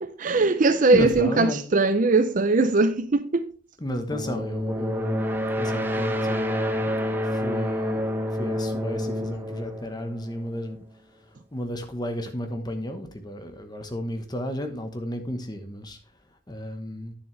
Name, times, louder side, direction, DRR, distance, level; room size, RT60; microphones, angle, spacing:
voice 1, 0.0-3.5, right 3 dB, 45° right, 0.5 m, -20 dB
voice 2, 0.9-1.6 3.8-8.0 8.3-10.8 11.5-16.0 16.5-17.1, left 1 dB, 25° left, 1.1 m, -33 dB
sound 1, 4.1-10.8, equal, 10° right, 0.9 m, -28 dB
9.5 x 7.2 x 3.3 m
head